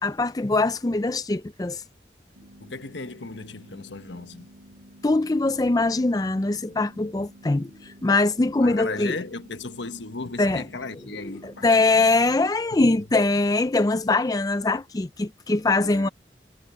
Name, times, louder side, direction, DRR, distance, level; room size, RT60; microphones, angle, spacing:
voice 1, 0.0-1.8 5.0-9.1 10.4-10.6 11.6-16.1, left 2 dB, 20° left, 0.4 m, -22 dB
sound 1, 2.3-12.4, equal, 85° right, 5.5 m, -51 dB
voice 2, 2.6-4.5 8.6-11.7 12.8-13.3 15.7-16.1, left 3 dB, 80° left, 1.3 m, -36 dB
head